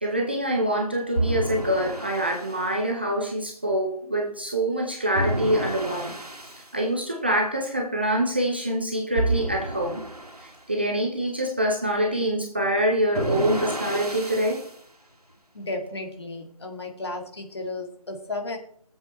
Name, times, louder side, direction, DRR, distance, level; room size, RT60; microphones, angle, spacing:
voice 1, 0.0-6.2 6.7-10.0 10.4-14.6, right 1 dB, 15° right, 1 dB, 0.7 m, -25 dB
sound 1, 1.2-2.6 5.1-6.7 9.2-10.5 13.1-14.7, right 1 dB, 80° right, 2.1 m, -30 dB
voice 2, 15.5-18.6, left 2 dB, 45° left, 2 dB, 2.3 m, -34 dB
23.0 x 7.7 x 3.1 m, 0.63 s
figure-of-eight pair, 165°, 19 cm